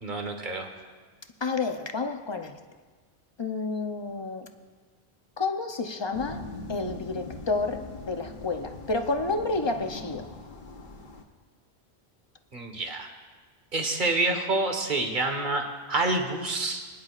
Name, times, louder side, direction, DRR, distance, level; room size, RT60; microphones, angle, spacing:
voice 1, 0.0-0.7 12.5-13.1 13.7-15.6 15.9-16.8, right 2 dB, 50° right, 4 dB, 1.5 m, -27 dB
voice 2, 1.4-2.6 3.4-4.5 5.4-6.4 6.7-10.3, left 3 dB, 30° left, 6 dB, 0.5 m, -30 dB
sound 1, 6.1-11.2, left 3 dB, 50° left, 1.1 m, -41 dB
25.0 x 10.5 x 2.4 m, 1.4 s
omnidirectional pair, 1.1 m